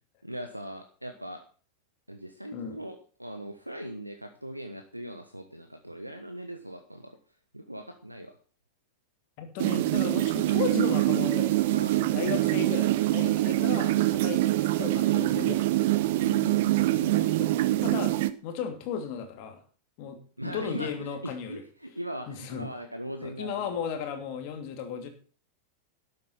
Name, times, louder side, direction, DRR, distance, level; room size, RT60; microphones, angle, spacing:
voice 1, 0.2-1.4 2.1-7.2 7.5-8.4 11.7-12.1 16.2-17.2 20.4-23.8, right 1 dB, 90° right, 6 dB, 1.1 m, -40 dB
voice 2, 9.4-11.6 11.9-15.7 17.1-17.5 17.8-18.2 18.4-19.6 20.0-21.6 22.3-22.7 23.2-25.1, left 7 dB, 45° left, 6 dB, 2.7 m, -35 dB
sound 1, 9.6-18.3, right 16 dB, 50° right, 0.7 m, -25 dB
12.0 x 8.5 x 5.8 m, 0.40 s
figure-of-eight pair, 90°, 0 cm